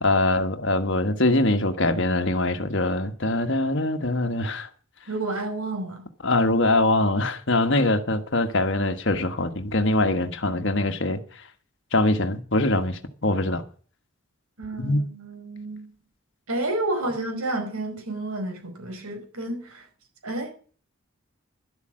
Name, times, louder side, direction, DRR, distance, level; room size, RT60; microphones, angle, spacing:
voice 1, 0.0-4.7 6.2-11.2 11.9-13.6 14.8-15.0, left 2 dB, 55° left, 1.4 m, -23 dB
voice 2, 5.1-6.1 14.6-15.9 16.5-19.9 20.2-20.5, right 2 dB, 85° right, 4.9 m, -30 dB
12.0 x 8.3 x 7.5 m
head